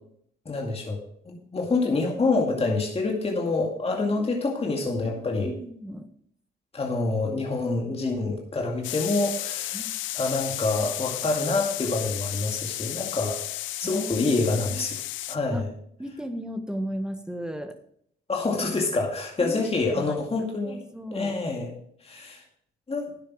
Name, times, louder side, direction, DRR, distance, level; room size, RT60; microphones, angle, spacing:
voice 1, 0.5-1.0 1.3-5.5 6.7-9.8 10.1-13.4 13.8-15.0 15.3-15.7 18.3-20.8 21.1-21.7 22.0-22.4 22.9-23.1, left 3 dB, 30° left, 1 dB, 2.2 m, -27 dB
voice 2, 5.0-6.1 9.7-10.0 13.8-14.9 15.5-15.7 16.0-17.8 19.4-19.7 19.9-21.4, equal, 5° right, 7 dB, 1.5 m, -36 dB
sound 1, 8.8-15.4, left 15 dB, 80° left, 0.5 m, -33 dB
10.5 x 8.4 x 4.8 m, 0.68 s
supercardioid pair, 65°, 20 cm